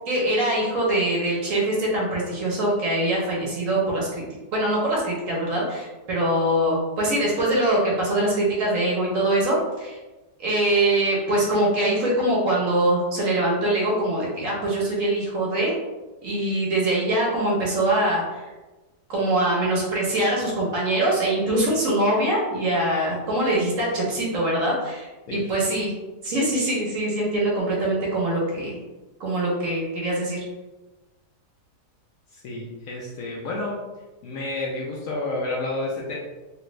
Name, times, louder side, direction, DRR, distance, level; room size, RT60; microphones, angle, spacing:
voice 1, 0.1-4.2 4.5-10.0 10.4-15.7 16.2-18.4 19.1-25.9 26.2-28.7 29.2-30.4, right 1 dB, 55° right, -4 dB, 1.2 m, -23 dB
voice 2, 32.3-33.8 34.2-36.1, left 2 dB, 70° left, -3 dB, 0.8 m, -30 dB
3.3 x 2.4 x 3.0 m, 1.2 s
omnidirectional pair, 1.7 m